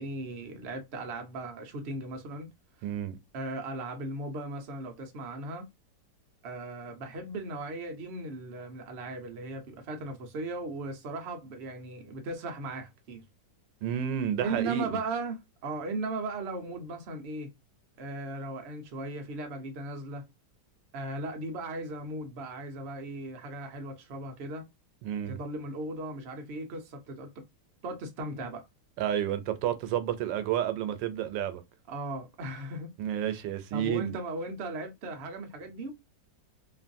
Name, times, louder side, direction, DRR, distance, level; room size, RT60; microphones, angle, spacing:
voice 1, 0.0-2.5 3.3-5.7 6.4-13.2 14.4-17.5 18.0-20.3 20.9-24.6 25.3-27.4 27.8-28.6 31.9-32.9 33.7-35.9, right 2 dB, 55° right, 0.8 m, -37 dB
voice 2, 2.8-3.2 13.8-15.0 25.0-25.4 29.0-31.6 33.0-34.1, right 10 dB, 85° right, 1.3 m, -30 dB
3.1 x 2.5 x 2.5 m
omnidirectional pair, 1.9 m